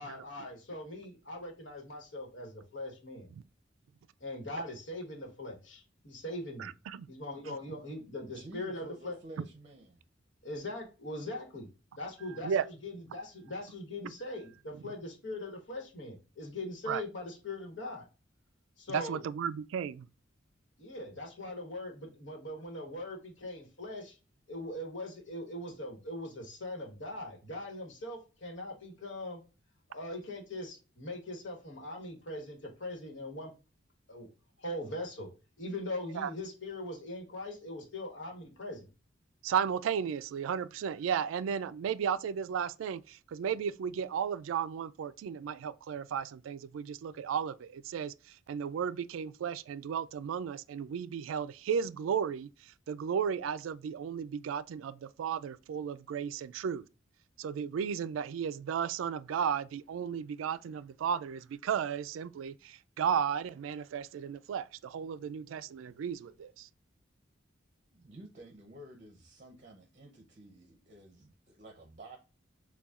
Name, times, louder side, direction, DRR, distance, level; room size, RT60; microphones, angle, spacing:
voice 1, 0.0-3.3 4.2-6.7 7.1-9.2 10.4-11.7 12.0-12.5 12.8-18.1 18.8-19.2 20.8-24.2 24.5-29.4 29.9-33.5 34.1-34.3 34.6-35.3 35.6-38.9, left 1 dB, 70° left, 1.2 m, -41 dB
voice 2, 6.6-7.1 7.5-7.6 12.3-12.6 14.7-14.9 16.9-17.0 18.9-20.1 36.1-36.3 39.4-56.9 57.4-66.7, right 7 dB, 90° right, 0.3 m, -34 dB
voice 3, 8.2-10.0 67.9-72.2, right 1 dB, 40° right, 0.7 m, -51 dB
6.8 x 2.3 x 2.4 m
head